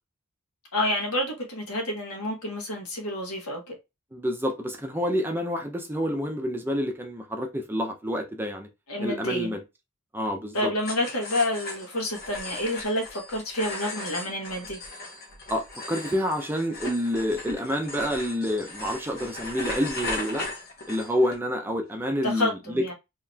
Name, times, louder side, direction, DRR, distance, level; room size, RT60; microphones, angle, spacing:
voice 1, 0.7-3.7 8.9-9.5 10.5-14.8 22.2-22.9, left 1 dB, 80° left, 1.7 m, -29 dB
voice 2, 4.1-8.7 9.0-9.6 10.1-10.7 15.5-20.4 20.9-22.9, equal, 10° right, 0.6 m, -28 dB
sound 1, 10.8-21.4, left 2 dB, 45° left, 1.3 m, -37 dB
4.0 x 3.0 x 2.8 m
head